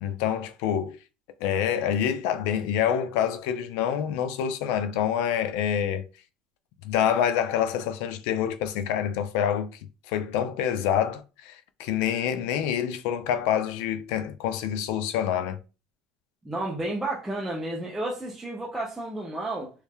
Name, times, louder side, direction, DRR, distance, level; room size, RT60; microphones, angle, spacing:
voice 1, 0.0-1.0 1.4-6.0 6.8-9.7 10.1-15.6, left 9 dB, 80° left, 0.5 m, -27 dB
voice 2, 16.4-19.7, right 1 dB, 5° right, 0.8 m, -31 dB
3.2 x 2.7 x 3.5 m
cardioid pair, 140°, 2 cm